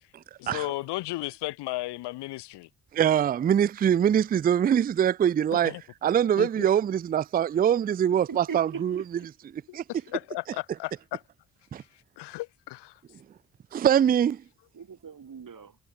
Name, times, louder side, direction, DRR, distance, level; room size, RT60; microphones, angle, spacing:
voice 1, 0.4-2.7 5.5-5.8 6.4-6.7 9.7-9.8 10.1-11.2 12.2-13.0, left 18 dB, 80° left, 1.8 m, -34 dB
voice 2, 2.9-5.7 6.0-9.0 9.7-9.8 11.7-11.8 13.7-14.4, right 9 dB, 25° right, 0.4 m, -23 dB
voice 3, 8.1-9.3 9.9-10.1 14.7-15.8, right 6 dB, 50° right, 5.5 m, -41 dB
hypercardioid pair, 40°, 41 cm